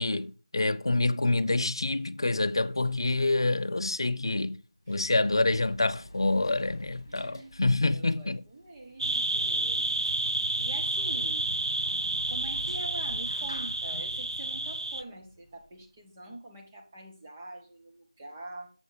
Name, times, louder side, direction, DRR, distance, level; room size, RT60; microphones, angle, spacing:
voice 1, 0.0-4.6 4.9-8.4, left 2 dB, 50° left, 0.5 m, -27 dB
Sliding door, 4.6-16.0, left 1 dB, 35° left, 2.2 m, -49 dB
voice 2, 7.1-7.6 7.9-10.3 10.6-11.5 12.3-18.7, right 2 dB, 15° right, 0.9 m, -45 dB
sound 1, 9.0-15.0, right 2 dB, 70° right, 0.4 m, -30 dB
7.3 x 4.9 x 4.8 m
figure-of-eight pair, 170°, 3 cm